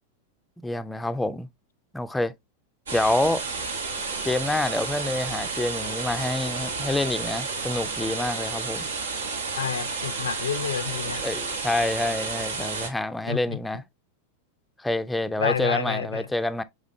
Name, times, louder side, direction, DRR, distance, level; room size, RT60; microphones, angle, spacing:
voice 1, 0.6-1.5 1.9-2.3 2.9-3.4 4.2-8.9 11.2-13.8 14.8-16.6, left 1 dB, 5° left, 0.4 m, -27 dB
sound 1, 2.9-12.9, right 4 dB, 85° right, 0.9 m, -31 dB
voice 2, 9.6-11.2 13.3-13.6 15.4-16.2, left 7 dB, 90° left, 0.4 m, -29 dB
5.1 x 3.4 x 2.5 m
hypercardioid pair, 100°, 0 cm